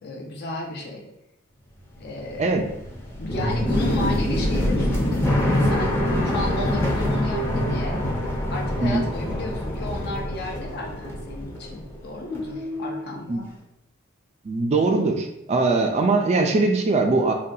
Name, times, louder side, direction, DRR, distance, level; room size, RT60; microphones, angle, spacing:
voice 1, 0.0-1.1 2.0-2.5 3.2-8.0 8.5-13.5, left 2 dB, 50° left, 1 dB, 0.6 m, -33 dB
sound 1, 1.9-12.0 12.2-13.1, left 1 dB, 10° left, 0.6 m, -25 dB
voice 2, 14.5-17.3, right 3 dB, 30° right, 3 dB, 0.3 m, -21 dB
3.8 x 2.2 x 2.7 m, 0.83 s
head